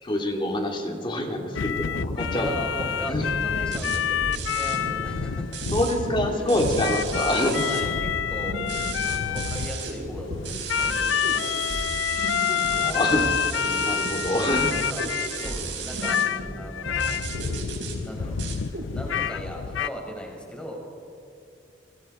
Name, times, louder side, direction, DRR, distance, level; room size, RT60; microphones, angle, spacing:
voice 1, 0.0-2.5 3.1-3.3 5.7-7.6 12.2-14.7, left 1 dB, 25° left, 2 dB, 2.8 m, -26 dB
sound 1, 1.6-15.6 16.0-19.9, left 8 dB, 80° left, 0.5 m, -28 dB
sound 2, 1.9-18.9, equal, 85° right, 7.9 m, -36 dB
voice 2, 2.3-5.6 6.3-6.7 7.6-8.7 9.0-11.6 13.6-13.9 14.7-15.0 15.3-16.2 16.6-17.2 18.1-18.4 18.9-21.0, equal, 5° left, -1 dB, 5.4 m, -38 dB
sound 3, 3.7-4.0 4.3-4.8 5.5-6.0 6.5-7.8 8.7-9.9 10.4-16.3 17.0-18.0 18.4-18.6, right 8 dB, 70° right, 5.0 m, -36 dB
29.5 x 25.0 x 4.5 m, 2.4 s
head